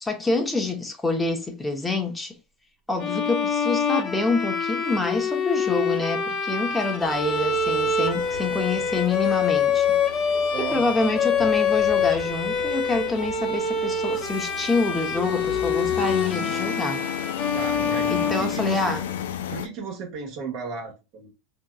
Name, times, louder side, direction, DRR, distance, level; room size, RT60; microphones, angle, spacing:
voice 1, 0.0-2.4 2.9-10.0 10.6-17.0 18.1-19.0, left 3 dB, 10° left, 1.1 m, -26 dB
Bowed string instrument, 3.0-19.1, left 5 dB, 35° left, 1.1 m, -25 dB
sound 1, 7.0-19.7, left 8 dB, 80° left, 0.5 m, -35 dB
voice 2, 10.5-11.2 17.5-19.0 19.5-21.3, right 5 dB, 55° right, 1.4 m, -35 dB
3.5 x 2.8 x 2.4 m
hypercardioid pair, 105°, 0 cm